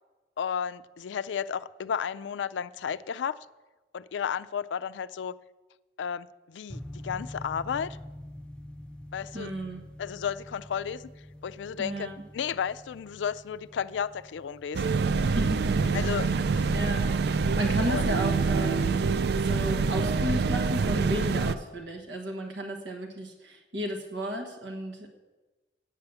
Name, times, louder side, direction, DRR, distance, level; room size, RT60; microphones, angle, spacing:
voice 1, 0.4-3.4 3.9-5.3 6.0-8.0 9.1-9.5 10.0-11.1 11.4-12.1 12.3-14.9 15.9-16.7 17.9-18.0, left 7 dB, 85° left, 15 dB, 0.4 m, -33 dB
sound 1, 6.7-17.5, left 1 dB, 5° left, 0.5 m, -46 dB
voice 2, 9.3-9.8 11.8-12.2 15.3-16.3 16.7-25.1, right 1 dB, 80° right, 2 dB, 1.3 m, -34 dB
sound 2, 14.7-21.5, right 4 dB, 60° right, 0.4 m, -26 dB
8.6 x 8.1 x 6.8 m, 1.2 s
head